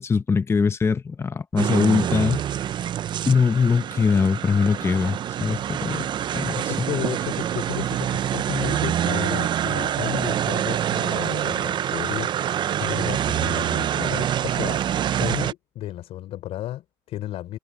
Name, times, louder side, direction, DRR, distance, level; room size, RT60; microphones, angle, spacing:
voice 1, 0.0-2.4 3.3-6.1 6.3-6.9, left 5 dB, 25° left, 0.8 m, -22 dB
sound 1, 1.6-15.5, right 10 dB, 45° right, 0.4 m, -26 dB
voice 2, 6.7-17.6, left 13 dB, 70° left, 3.9 m, -33 dB
cardioid pair, 115°, 11 cm